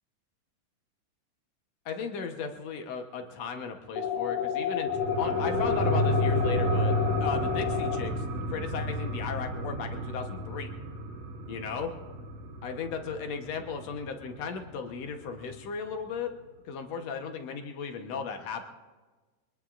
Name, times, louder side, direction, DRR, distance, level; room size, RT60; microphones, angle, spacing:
voice 1, 1.9-4.9 5.2-10.7 11.5-11.9 12.6-16.3 16.7-18.7, left 6 dB, 65° left, 5 dB, 1.9 m, -36 dB
sound 1, 4.0-8.0, left 8 dB, 80° left, 3.1 m, -29 dB
sound 2, 4.9-14.0 14.3-14.4, right 1 dB, 60° right, 1.8 m, -31 dB
24.0 x 20.5 x 2.5 m, 1.3 s
omnidirectional pair, 3.9 m